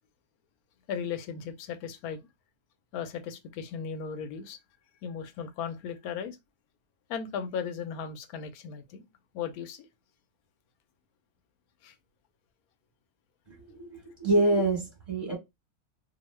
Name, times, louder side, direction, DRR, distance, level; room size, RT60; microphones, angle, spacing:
voice 1, 0.9-2.3 2.9-4.6 5.0-6.4 7.1-9.1 9.3-9.9 11.8-11.9, left 7 dB, 80° left, 1.1 m, -36 dB
voice 2, 13.5-15.3, right 2 dB, 25° right, 1.3 m, -27 dB
2.9 x 2.1 x 3.0 m
omnidirectional pair, 1.6 m